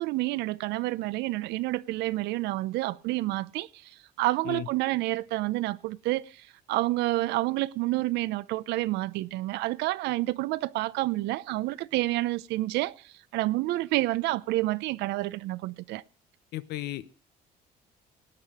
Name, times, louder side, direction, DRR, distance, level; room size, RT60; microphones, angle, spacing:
voice 1, 0.0-16.0, right 18 dB, 85° right, 0.6 m, -29 dB
voice 2, 16.5-17.1, left 14 dB, 75° left, 0.8 m, -35 dB
17.5 x 8.9 x 4.9 m
cardioid pair, 110°, 17 cm